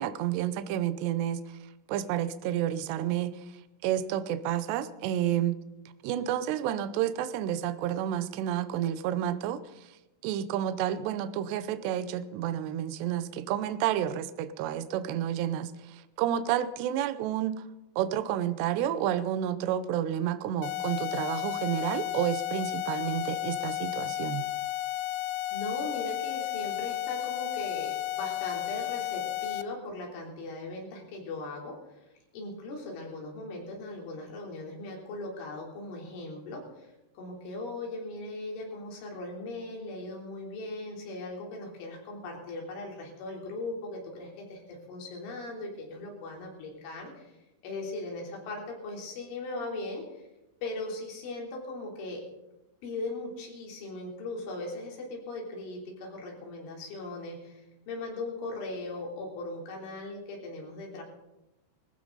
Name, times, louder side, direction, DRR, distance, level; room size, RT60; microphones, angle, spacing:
voice 1, 0.0-1.4 1.9-3.3 3.8-5.6 6.0-9.6 10.2-15.7 16.2-17.6 18.0-24.4, right 11 dB, 85° right, 12 dB, 2.4 m, -30 dB
sound 1, 20.6-29.6, left 15 dB, 90° left, 3.4 m, -33 dB
voice 2, 25.5-31.7 32.3-36.9 37.2-44.6 44.9-47.3 47.6-50.2 50.6-52.2 52.8-61.0, left 2 dB, 70° left, -1 dB, 5.8 m, -39 dB
20.5 x 15.0 x 4.0 m, 0.95 s
omnidirectional pair, 5.9 m